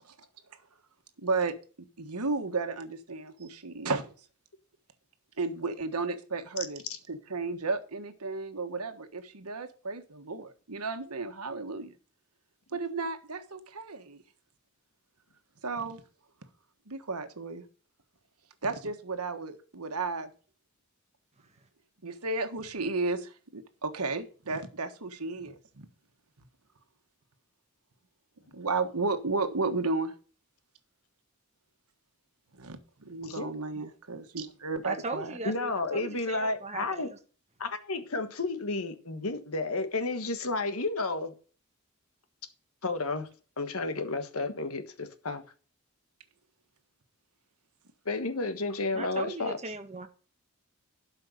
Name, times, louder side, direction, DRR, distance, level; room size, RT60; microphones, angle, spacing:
voice 1, 1.2-1.5 2.0-4.1 5.4-6.8 7.1-12.0 12.7-14.2 15.6-16.0 16.9-17.6 18.6-20.3 22.0-25.9 28.5-30.1 32.5-35.4, right 3 dB, 85° right, 1.4 m, -33 dB
voice 2, 34.8-37.2 48.9-50.1, right 2 dB, 30° right, 1.4 m, -38 dB
voice 3, 35.4-37.1 37.6-41.3 42.8-43.3 43.6-45.4 48.0-49.6, left 3 dB, 70° left, 1.5 m, -32 dB
12.0 x 5.7 x 5.1 m
head